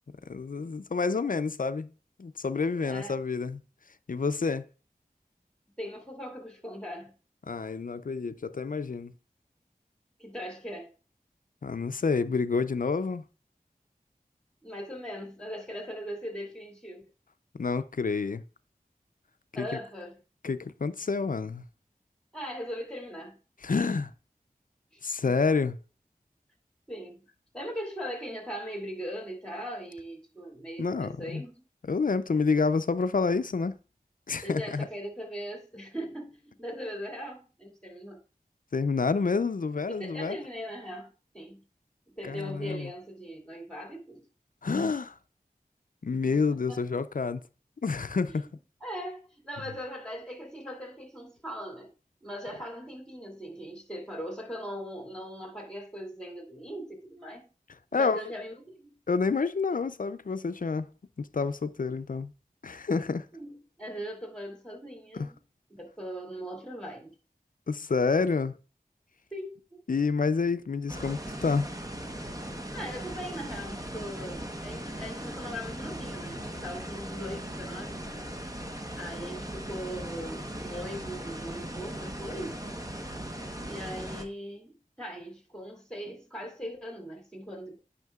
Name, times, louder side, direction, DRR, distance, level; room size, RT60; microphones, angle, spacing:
voice 1, 0.3-1.9 2.2-3.6 4.1-4.6 7.5-9.1 11.6-13.2 17.5-18.4 19.6-19.7 20.4-21.6 23.6-24.1 25.0-25.8 30.8-31.4 31.9-33.7 34.3-34.9 38.7-40.4 42.2-42.9 44.6-45.1 46.0-47.4 47.8-48.5 57.9-58.2 59.1-60.9 61.2-62.3 62.6-63.3 65.1-65.3 67.7-68.5 69.9-71.7, left 4 dB, 65° left, 0.4 m, -28 dB
voice 2, 2.8-3.2 5.8-7.1 10.2-10.9 14.6-17.0 19.5-20.2 22.3-23.4 24.9-25.3 26.9-27.2 27.5-31.6 34.4-38.2 39.9-41.6 42.2-44.3 46.2-46.4 46.7-46.8 48.3-48.5 48.8-51.9 52.2-57.5 57.9-59.0 63.3-65.4 65.8-67.1 69.3-69.8 72.7-78.0 79.0-82.7 83.7-87.8, equal, 5° left, 2.4 m, -40 dB
sound 1, 70.9-84.3, right 1 dB, 25° right, 1.0 m, -38 dB
9.2 x 5.7 x 2.3 m
wide cardioid pair, 50°, 15 cm